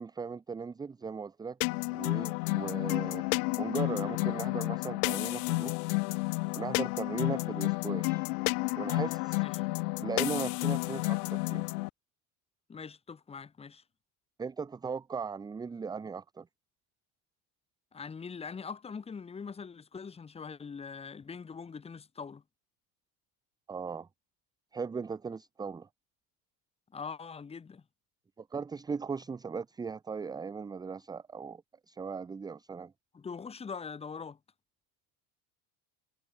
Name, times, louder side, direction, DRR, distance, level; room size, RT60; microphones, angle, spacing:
voice 1, 0.0-1.6 1.9-3.2 3.6-6.0 6.6-8.2 8.8-9.4 10.0-11.7 14.4-16.5 23.7-24.1 24.7-25.9 28.4-32.9, right 5 dB, 10° right, 0.9 m, -38 dB
sound 1, 1.6-11.9, left 28 dB, 85° left, 1.3 m, -31 dB
voice 2, 12.7-13.8 17.9-22.4 26.9-27.8 33.1-34.4, left 5 dB, 15° left, 2.4 m, -42 dB
cardioid pair, 175°, 43 cm